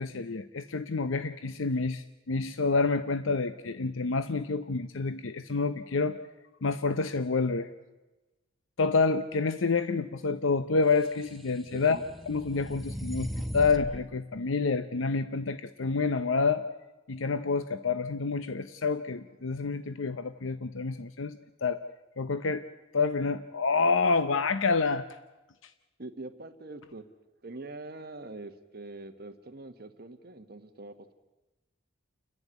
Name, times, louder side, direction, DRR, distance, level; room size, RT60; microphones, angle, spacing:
voice 1, 0.0-6.2 6.6-7.7 8.8-12.0 12.3-16.6 17.1-21.8 22.2-22.6 22.9-25.0, left 4 dB, 75° left, 12 dB, 0.7 m, -28 dB
sound 1, 11.1-14.1, equal, ahead, 0.9 m, -38 dB
voice 2, 11.7-12.0 26.0-27.0 27.4-31.1, right 2 dB, 50° right, 7 dB, 1.3 m, -44 dB
30.0 x 10.5 x 9.3 m, 1.1 s
head